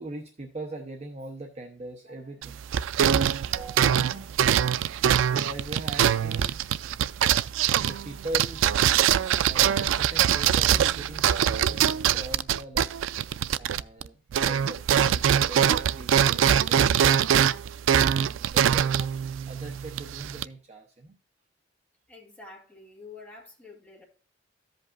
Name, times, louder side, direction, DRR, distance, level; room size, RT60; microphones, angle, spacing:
voice 1, 0.0-4.3 4.8-6.6 7.3-9.1 9.4-12.9 13.6-17.3 18.1-19.2 19.5-21.1, right 2 dB, 35° right, 0.8 m, -41 dB
sound 1, 2.4-14.1 14.3-20.5, right 9 dB, 85° right, 0.3 m, -23 dB
voice 2, 22.1-24.0, left 3 dB, 10° left, 2.1 m, -47 dB
14.5 x 5.3 x 2.4 m
head